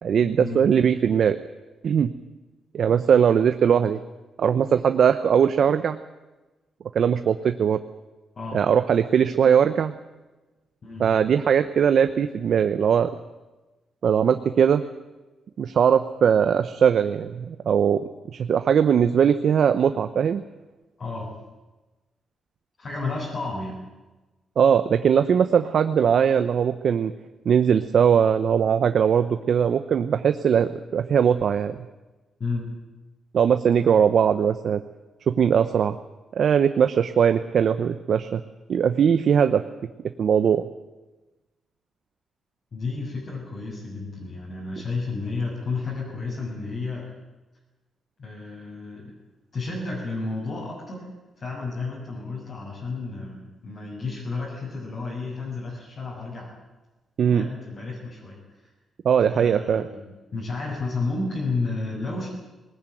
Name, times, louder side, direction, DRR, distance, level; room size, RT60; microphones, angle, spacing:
voice 1, 0.0-1.4 1.8-2.1 2.7-4.0 4.4-6.0 6.9-7.8 8.5-9.9 11.0-13.1 14.0-14.8 15.6-18.0 18.3-20.4 24.6-27.1 27.4-31.8 33.3-34.8 35.3-36.0 36.4-38.4 38.7-39.6 40.2-40.6 57.2-57.5 59.0-59.8, right 7 dB, 60° right, 9 dB, 0.9 m, -20 dB
voice 2, 10.8-11.2 21.0-21.4 22.8-23.8 32.4-32.7 42.7-47.0 48.2-49.1 49.5-51.1 51.4-56.5 57.3-58.7 59.3-62.3, left 3 dB, 45° left, -5 dB, 6.7 m, -32 dB
20.0 x 19.5 x 9.2 m, 1.1 s
cardioid pair, 115°, 0 cm